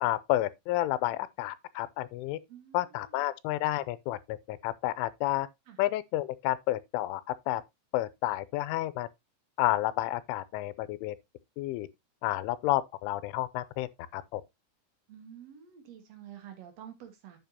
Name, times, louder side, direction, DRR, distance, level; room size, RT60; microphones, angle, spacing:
voice 1, 0.0-2.4 2.7-5.5 5.8-7.6 7.9-9.1 9.6-11.2 11.6-11.9 12.2-14.4, left 15 dB, 85° left, 3.1 m, -30 dB
voice 2, 2.5-3.2 5.7-5.8 15.1-17.4, right 9 dB, 65° right, 1.6 m, -49 dB
9.0 x 8.1 x 2.8 m
omnidirectional pair, 5.5 m